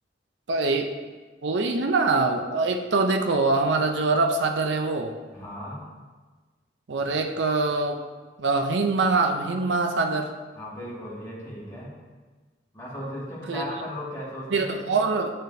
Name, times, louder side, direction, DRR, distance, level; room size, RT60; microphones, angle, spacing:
voice 1, 0.5-0.9 1.4-5.1 6.9-8.0 8.4-10.3 13.5-13.6 14.5-15.3, right 3 dB, 80° right, 5 dB, 0.5 m, -24 dB
voice 2, 5.3-5.8 10.5-11.9 12.7-15.0, equal, 15° left, -7 dB, 1.9 m, -36 dB
8.5 x 6.4 x 2.7 m, 1.3 s
head